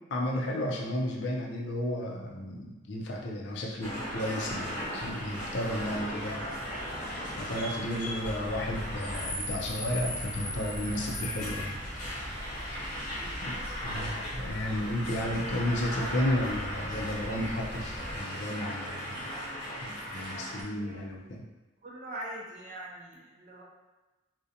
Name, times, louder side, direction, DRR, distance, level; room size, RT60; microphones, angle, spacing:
voice 1, 0.1-6.5 7.4-11.8 13.4-13.6 13.8-19.2 19.8-21.4, left 1 dB, 70° left, -1 dB, 0.4 m, -33 dB
sound 1, 3.8-20.6, equal, 40° left, 0.9 m, -37 dB
sound 2, 8.2-18.2, equal, 15° left, 0.7 m, -42 dB
voice 2, 12.8-13.6 20.4-21.0 21.8-23.6, right 1 dB, 40° right, -3 dB, 0.4 m, -44 dB
2.5 x 2.1 x 2.7 m, 1.1 s
head